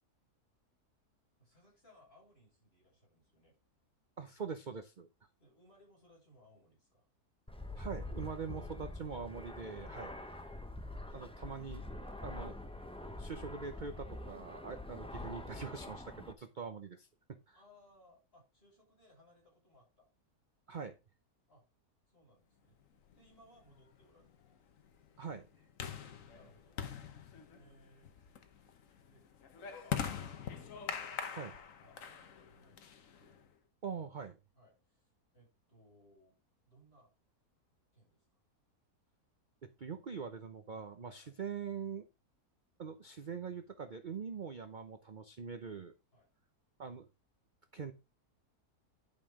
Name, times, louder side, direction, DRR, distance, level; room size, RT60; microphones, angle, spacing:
voice 1, 1.4-3.6 5.4-7.1 10.1-10.2 11.0-11.3 12.0-12.2 17.5-20.1 21.5-21.6 22.1-22.8 23.1-24.3 26.3-26.8 27.5-28.4 29.0-29.2 29.8-30.8 31.8-33.4 34.6-36.3 36.6-37.1 37.9-38.4 41.2-41.3 46.1-46.3, left 1 dB, 40° left, -2 dB, 6.3 m, -65 dB
voice 2, 4.2-5.1 7.8-10.1 11.1-11.8 12.2-12.5 13.2-17.1 17.5-17.6 20.7-21.0 25.2-25.4 31.3-31.6 33.8-34.4 39.6-42.1 42.8-45.9 46.8-47.1 47.7-47.9, right 6 dB, 40° right, 8 dB, 0.7 m, -43 dB
Fixed-wing aircraft airplane, 7.5-16.3, left 1 dB, 5° left, 0.5 m, -45 dB
sound 1, 23.1-33.5, left 8 dB, 60° left, 1.3 m, -44 dB
10.5 x 5.4 x 3.7 m, 0.28 s
omnidirectional pair, 1.6 m